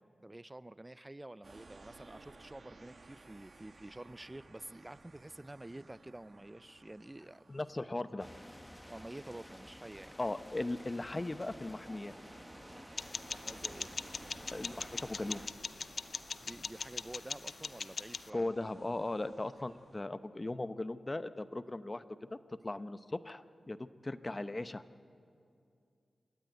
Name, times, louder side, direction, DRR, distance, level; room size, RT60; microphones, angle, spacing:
voice 1, 0.2-7.6 8.9-10.1 13.3-13.9 16.4-18.7, right 1 dB, 20° right, 16 dB, 0.4 m, -49 dB
sound 1, 1.4-20.0, right 3 dB, 60° right, 1.9 m, -58 dB
voice 2, 7.5-8.3 10.2-12.1 14.5-15.4 18.3-22.0 22.3-22.4 22.6-24.8, left 2 dB, 30° left, 12 dB, 0.8 m, -38 dB
sound 2, 8.2-15.5, equal, 5° left, 1.0 m, -52 dB
sound 3, 13.0-18.3, left 4 dB, 65° left, 0.6 m, -42 dB
26.5 x 13.5 x 9.3 m, 2.5 s
cardioid pair, 45°, 0 cm